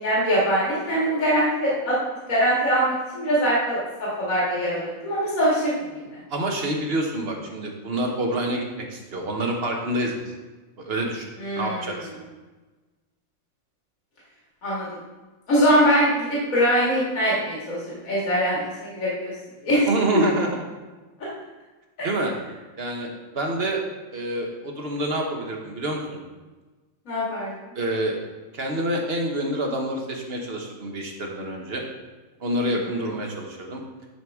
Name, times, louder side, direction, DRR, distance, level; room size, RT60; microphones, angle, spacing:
voice 1, 0.0-2.0 2.3-6.2 11.4-11.9 14.6-14.9 15.5-19.3 19.6-19.8 22.0-22.1 27.1-27.5 32.6-32.8, equal, 70° left, -8 dB, 2.4 m, -23 dB
voice 2, 6.3-10.1 10.8-11.3 11.6-12.1 19.9-20.6 22.0-22.3 22.8-23.1 23.3-23.8 24.1-26.2 27.7-28.2 28.5-31.8 32.4-33.8, right 1 dB, 45° right, 1 dB, 1.2 m, -27 dB
10.5 x 4.7 x 3.5 m, 1.2 s
omnidirectional pair, 1.5 m